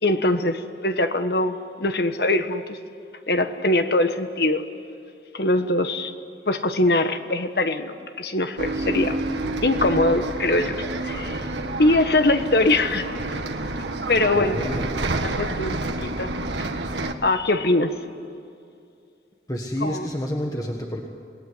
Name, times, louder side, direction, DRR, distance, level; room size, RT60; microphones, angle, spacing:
voice 1, 0.0-2.8 3.3-4.6 5.3-6.1 6.5-9.2 9.6-10.8 11.0-11.4 11.8-13.1 14.1-14.6 15.2-16.7 17.2-18.0 19.8-20.1, left 2 dB, 65° left, 1.4 m, -22 dB
Bus, 8.6-17.1, right 2 dB, 85° right, 1.6 m, -29 dB
voice 2, 14.3-14.9 19.5-21.1, equal, 20° left, 1.5 m, -29 dB
27.0 x 18.5 x 9.8 m
head